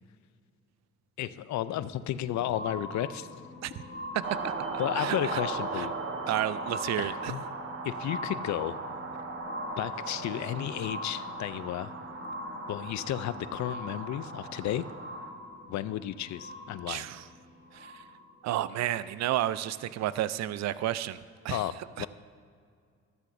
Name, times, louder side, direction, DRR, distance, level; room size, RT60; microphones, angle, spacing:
voice 1, 1.2-3.3 4.8-5.9 7.0-7.4 7.8-8.8 9.8-11.9 12.7-14.9 15.7-17.1 21.5-22.1, left 12 dB, 65° left, 15 dB, 0.5 m, -33 dB
sound 1, 1.6-18.5 19.2-19.3, left 1 dB, 50° left, 2.3 m, -43 dB
voice 2, 4.1-4.5 5.0-5.4 5.8-5.9 6.3-7.3 16.9-17.2 17.7-18.0 18.4-21.2 21.4-21.6 22.0-22.1, right 13 dB, 65° right, 16 dB, 0.5 m, -31 dB
sound 2, 4.2-15.3, right 4 dB, 45° right, 1.1 m, -38 dB
13.5 x 13.0 x 2.6 m, 2.2 s
cardioid pair, 90°, 30 cm